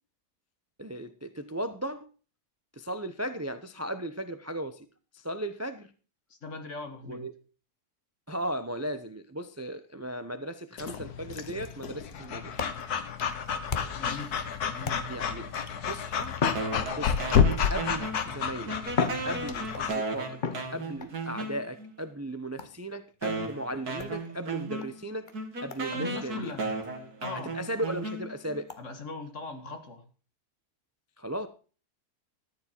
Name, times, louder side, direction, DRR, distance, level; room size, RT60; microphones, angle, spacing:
voice 1, 0.8-2.1 2.7-4.9 5.1-5.9 7.1-7.3 8.3-12.7 15.1-15.5 15.9-16.3 17.0-17.4 17.7-18.8 19.2-20.4 20.7-25.3 25.6-26.6 27.5-28.7 31.2-31.5, right 1 dB, 20° right, 10 dB, 0.4 m, -36 dB
voice 2, 6.3-7.3 14.0-14.4 14.7-15.1 25.9-26.7 27.2-27.6 28.8-30.0, left 3 dB, 50° left, 6 dB, 2.1 m, -39 dB
Breathing / Dog, 10.8-19.9, left 7 dB, 80° left, 1.7 m, -30 dB
sound 1, 12.1-14.2 14.8-15.4 16.3-17.4 18.3-18.4 18.9-19.9 20.4-21.1 22.6-22.9 24.0-24.2 24.8-24.9 25.3-25.4 25.7-25.9 26.2-26.3 26.7-26.8 27.2-27.3 27.7-27.8 28.7-28.8, left 5 dB, 35° left, 1.0 m, -35 dB
sound 2, 16.6-18.4 18.7-21.9 22.6-22.7 23.2-28.6, right 3 dB, 75° right, 2.6 m, -35 dB
14.0 x 9.6 x 4.4 m, 0.37 s
omnidirectional pair, 1.6 m